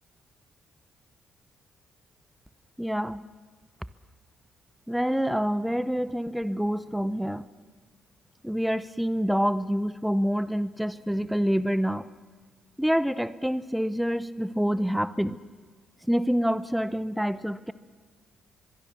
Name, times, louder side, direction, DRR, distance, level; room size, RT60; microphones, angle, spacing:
voice 1, 2.8-3.2 4.9-7.4 8.4-12.1 12.8-15.4 16.1-17.7, equal, ahead, 15 dB, 0.8 m, -27 dB
24.5 x 22.5 x 7.1 m, 1.5 s
cardioid pair, 90°, 0 cm